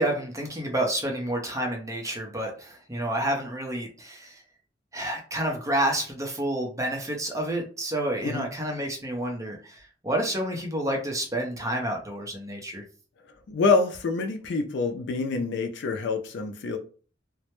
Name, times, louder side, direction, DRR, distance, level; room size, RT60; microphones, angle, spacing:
voice 1, 0.0-4.4 4.9-12.8, right 1 dB, 15° right, 0.5 m, -29 dB
voice 2, 13.5-16.8, left 4 dB, 65° left, 0.4 m, -26 dB
2.1 x 2.0 x 2.9 m
head